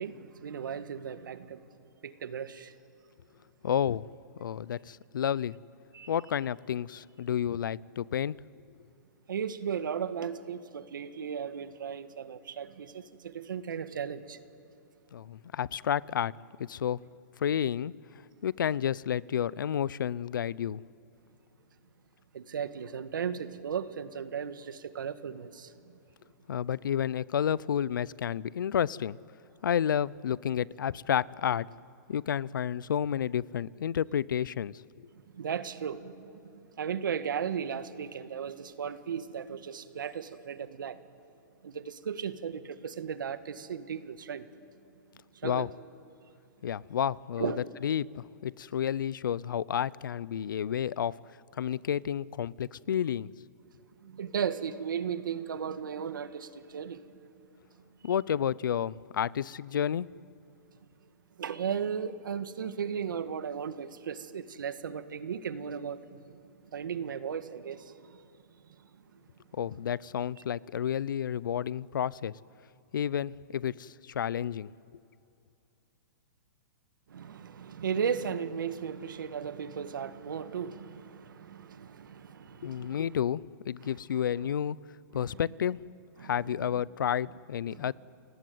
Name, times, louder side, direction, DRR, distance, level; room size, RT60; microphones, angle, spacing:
voice 1, 0.0-1.6 2.0-2.7 5.9-6.1 9.3-14.4 22.3-26.0 35.3-36.3 36.8-41.0 41.6-44.5 45.3-45.7 47.4-47.6 54.0-57.0 58.0-58.1 61.4-66.2 66.7-68.2 68.8-69.2 77.1-83.1 83.8-84.0 85.1-85.4 86.2-86.8 87.7-87.9, right 7 dB, 85° right, 11 dB, 1.7 m, -36 dB
voice 2, 3.6-4.0 4.4-5.6 6.1-8.4 15.1-16.3 16.6-17.0 17.4-17.9 18.4-20.8 26.5-29.2 29.6-31.7 32.1-34.8 45.4-45.7 46.6-47.5 47.8-51.2 51.6-53.3 58.0-60.1 69.6-72.3 72.9-74.7 82.6-84.8 85.1-85.8 86.2-87.9, left 9 dB, 85° left, 23 dB, 0.6 m, -30 dB
30.0 x 18.5 x 9.4 m, 2.7 s
hypercardioid pair, 155°, 11 cm